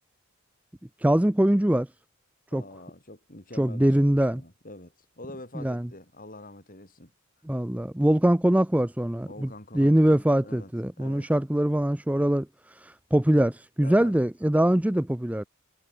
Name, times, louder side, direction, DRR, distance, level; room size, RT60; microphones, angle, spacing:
voice 1, 1.0-1.9 2.5-2.6 3.6-4.4 5.6-5.9 7.5-15.4, right 1 dB, 5° right, 0.5 m, -23 dB
voice 2, 2.5-7.1 9.3-10.7 11.0-11.3 13.8-14.2, left 1 dB, 40° left, 5.9 m, -45 dB
head